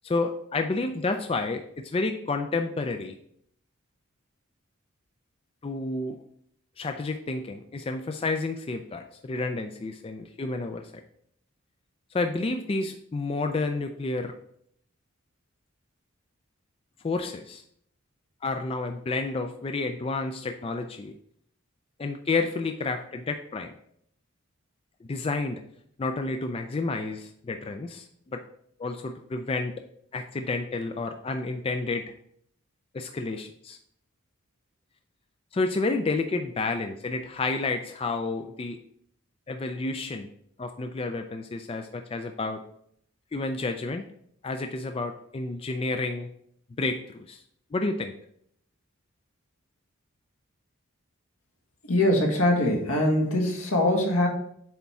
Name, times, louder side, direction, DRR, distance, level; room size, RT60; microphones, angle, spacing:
voice 1, 0.0-3.2 5.6-6.2 6.8-11.0 12.1-14.4 17.0-17.6 18.4-21.1 22.0-23.7 25.0-25.6 26.0-28.4 28.8-29.7 30.1-32.1 32.9-33.8 35.5-38.8 39.5-40.3 40.6-42.6 43.3-44.0 44.4-46.3 46.8-47.4 47.7-48.1, left 3 dB, 25° left, 6 dB, 0.3 m, -30 dB
voice 2, 51.9-54.3, left 1 dB, 80° left, 1 dB, 1.6 m, -23 dB
8.0 x 3.5 x 4.2 m, 0.69 s
head